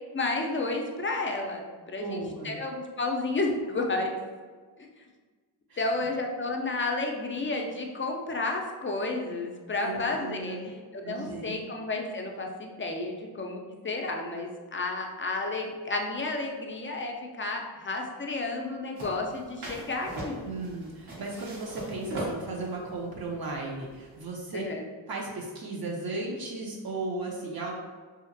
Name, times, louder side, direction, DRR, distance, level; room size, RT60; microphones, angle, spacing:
voice 1, 0.1-2.2 2.4-4.1 4.8-4.9 5.8-10.6 10.9-20.5 24.5-24.8, left 2 dB, 25° left, 1 dB, 0.4 m, -31 dB
voice 2, 2.0-2.6 5.7-5.9 9.8-10.7 11.0-11.6 20.4-24.6 25.1-27.7, right 2 dB, 50° right, -2 dB, 0.5 m, -35 dB
sound 1, 19.0-24.3, right 1 dB, 85° right, 0.9 m, -39 dB
2.8 x 2.4 x 2.6 m, 1.5 s
cardioid pair, 45°, 47 cm